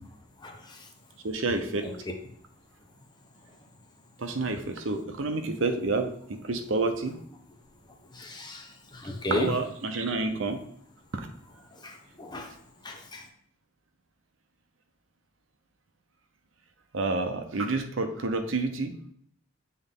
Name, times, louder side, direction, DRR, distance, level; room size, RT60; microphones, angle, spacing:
voice 1, 1.2-1.9 4.2-7.2 9.3-10.6 11.1-11.3 16.9-19.0, right 3 dB, 75° right, 0.8 m, -29 dB
voice 2, 8.2-8.6 8.9-9.5 11.8-12.5 12.8-13.2, left 1 dB, 20° left, 0.9 m, -34 dB
7.8 x 4.0 x 3.8 m
head